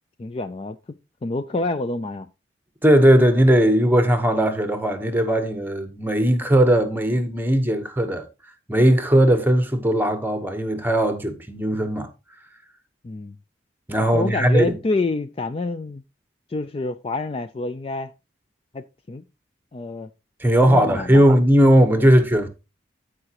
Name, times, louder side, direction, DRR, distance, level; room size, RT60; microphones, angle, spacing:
voice 1, 0.2-0.8 1.2-2.3 13.0-13.4 14.1-16.0 16.5-18.1 18.7-19.2 19.7-20.1 20.6-21.2, left 2 dB, 30° left, 0.3 m, -27 dB
voice 2, 2.8-8.2 8.7-12.1 13.9-14.7 20.4-22.5, right 1 dB, 10° right, 1.0 m, -18 dB
14.5 x 4.9 x 2.9 m
head